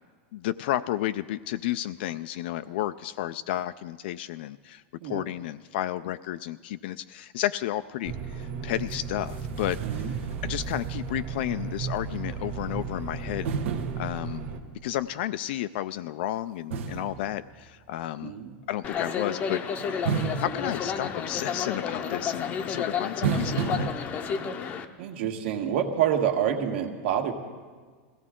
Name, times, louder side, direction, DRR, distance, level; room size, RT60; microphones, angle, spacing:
voice 1, 0.3-10.2 10.4-13.5 14.0-14.5 14.8-18.4 18.7-19.6 19.9-20.0 20.4-24.0, left 13 dB, 55° left, 12 dB, 0.3 m, -32 dB
sound 1, 8.0-14.6, right 5 dB, 45° right, 1.7 m, -35 dB
sound 2, 8.9-9.0 9.3-11.3 11.7-11.8 13.4-14.8 16.7-18.1 20.1-21.6 23.2-23.9, right 6 dB, 80° right, 1.2 m, -33 dB
voice 2, 9.8-10.1 18.2-18.5 25.0-27.3, right 9 dB, 60° right, 4 dB, 1.6 m, -27 dB
sound 3, 18.8-24.8, left 7 dB, 20° left, 0.7 m, -31 dB
21.0 x 16.0 x 3.7 m, 1.5 s
supercardioid pair, 170°, 7 cm